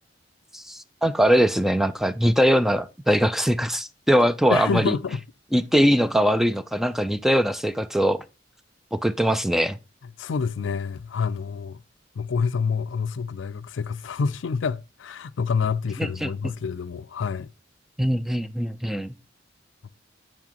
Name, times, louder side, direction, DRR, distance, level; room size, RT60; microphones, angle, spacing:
voice 1, 0.5-5.0 5.5-8.2 8.9-9.8 16.0-16.5 18.0-19.1, equal, ahead, 0.4 m, -22 dB
voice 2, 4.5-5.2 10.2-11.8 12.2-17.5, left 5 dB, 85° left, 0.4 m, -27 dB
7.5 x 7.3 x 2.9 m
head